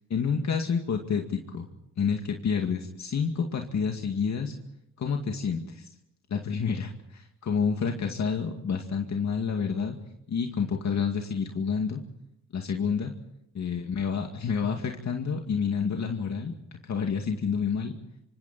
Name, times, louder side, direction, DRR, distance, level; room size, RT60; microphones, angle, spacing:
voice 1, 0.1-1.7 2.0-4.5 5.0-5.9 6.3-10.0 10.3-12.0 12.5-13.1 13.5-16.5 16.8-17.9, left 6 dB, 60° left, 3 dB, 2.3 m, -29 dB
26.5 x 26.0 x 4.3 m, 0.80 s
cardioid pair, 100°, 32 cm